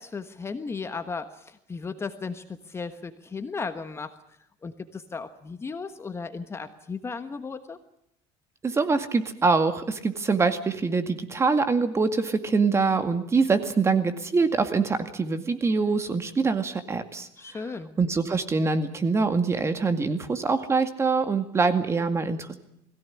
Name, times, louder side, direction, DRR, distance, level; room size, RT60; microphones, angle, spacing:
voice 1, 0.0-4.1 4.6-7.8 17.4-17.9, left 4 dB, 20° left, 9 dB, 1.3 m, -35 dB
voice 2, 8.6-17.3 18.0-22.6, right 4 dB, 20° right, 8 dB, 2.1 m, -24 dB
21.5 x 16.5 x 10.0 m, 0.75 s
cardioid pair, 125°, 12 cm